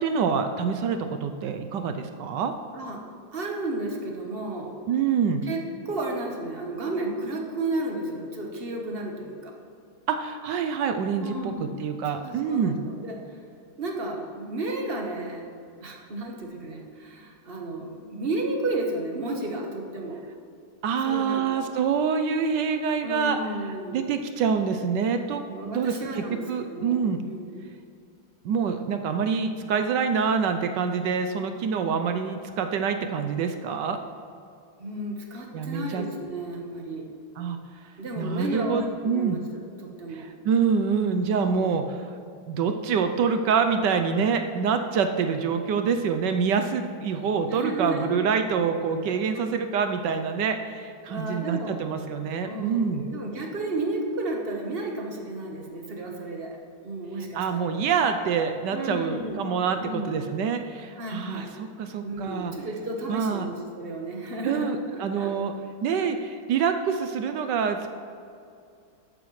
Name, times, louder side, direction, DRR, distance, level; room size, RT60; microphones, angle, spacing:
voice 1, 0.0-2.5 4.9-5.4 10.1-12.8 20.8-23.4 23.9-27.2 28.4-34.0 35.5-36.0 37.4-37.6 38.2-39.4 40.1-41.8 42.5-53.0 57.3-62.5 63.1-63.5 64.4-65.5 65.8-67.9, right 6 dB, 70° right, 7 dB, 1.2 m, -26 dB
voice 2, 2.7-4.8 5.4-9.6 11.2-11.7 12.2-13.3 13.8-15.5 15.8-20.2 21.0-21.4 23.0-24.1 25.5-27.7 34.8-37.1 38.0-40.3 47.5-48.1 51.1-51.8 52.4-56.6 56.8-57.7 58.7-59.5 59.8-60.3 61.0-61.5 62.0-65.4 65.9-66.0, right 2 dB, 35° right, 1 dB, 1.1 m, -33 dB
12.5 x 9.1 x 3.2 m, 2.5 s
omnidirectional pair, 2.1 m